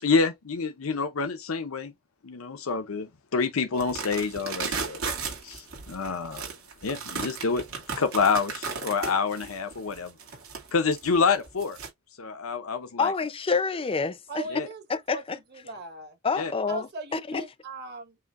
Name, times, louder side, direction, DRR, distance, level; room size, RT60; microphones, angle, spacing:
voice 1, 0.0-1.9 2.2-5.0 5.4-6.4 6.8-7.6 8.0-10.1 10.7-11.8 12.2-13.1 14.5-14.7 16.4-16.5, left 5 dB, 90° left, 0.7 m, -27 dB
sound 1, 3.8-11.9, right 5 dB, 85° right, 2.3 m, -35 dB
voice 2, 13.0-14.6 14.9-15.4 16.2-17.5, left 4 dB, 25° left, 0.5 m, -28 dB
voice 3, 14.3-14.8 15.1-16.2 16.7-18.2, right 2 dB, 50° right, 1.3 m, -39 dB
7.7 x 2.7 x 2.5 m
head